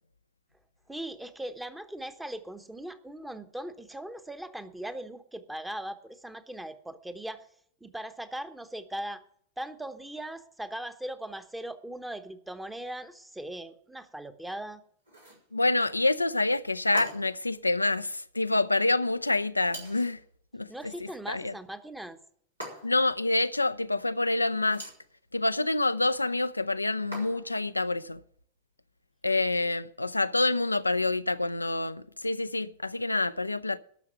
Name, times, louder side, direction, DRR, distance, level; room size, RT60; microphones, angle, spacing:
voice 1, 0.9-7.4 7.8-9.2 9.6-14.8 20.7-22.2, right 1 dB, 5° right, 1.0 m, -39 dB
sound 1, 15.0-15.5 16.9-17.5 19.7-20.2 22.6-23.1 24.6-25.1 27.1-27.6, right 1 dB, 85° right, 4.6 m, -42 dB
voice 2, 15.5-20.2 20.5-21.5 22.8-24.9 25.3-28.2 29.2-33.8, left 2 dB, 85° left, 0.4 m, -27 dB
12.0 x 6.5 x 8.6 m
figure-of-eight pair, 90°, 0 cm